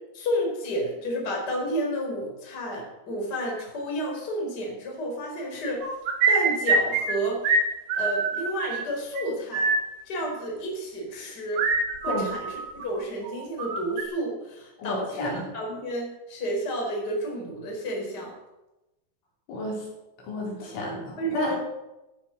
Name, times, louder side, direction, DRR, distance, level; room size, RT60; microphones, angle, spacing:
voice 1, 0.1-5.9 6.3-7.4 8.0-9.7 10.0-11.6 12.0-18.3 21.2-21.6, equal, 20° left, -1 dB, 4.4 m, -31 dB
sound 1, 5.8-7.2 7.4-7.6 7.9-8.8 9.2-9.3 9.5-9.8 11.6-13.0 13.3-14.0, right 3 dB, 60° right, 3.9 m, -24 dB
voice 2, 14.8-15.4 19.5-19.9 20.2-21.6, left 1 dB, 70° left, -2 dB, 6.2 m, -31 dB
15.0 x 13.0 x 6.5 m, 1.0 s
omnidirectional pair, 5.9 m